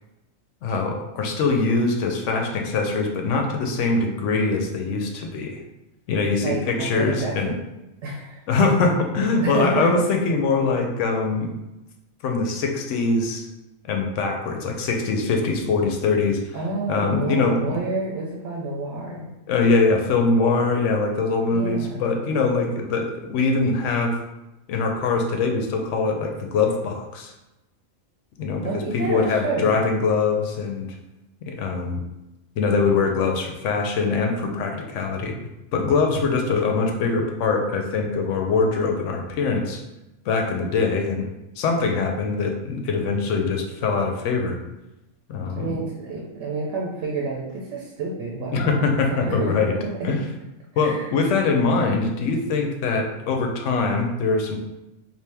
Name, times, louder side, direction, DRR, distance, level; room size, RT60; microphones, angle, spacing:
voice 1, 0.6-5.6 6.1-7.5 8.5-11.5 12.2-13.5 13.9-16.4 16.9-17.8 19.5-24.2 24.7-27.3 28.4-30.9 31.5-32.0 32.6-35.3 35.7-39.8 40.3-41.3 41.6-44.6 45.3-45.8 48.5-49.7 50.0-50.2 50.8-54.6, left 4 dB, 70° left, 2 dB, 0.9 m, -23 dB
voice 2, 6.4-7.6 8.0-8.4 9.4-9.9 16.5-19.3 21.5-22.2 28.6-29.8 45.5-49.7 50.1-50.2 50.7-51.1, right 3 dB, 70° right, -2 dB, 1.0 m, -29 dB
3.4 x 2.6 x 3.3 m, 0.96 s
omnidirectional pair, 1.4 m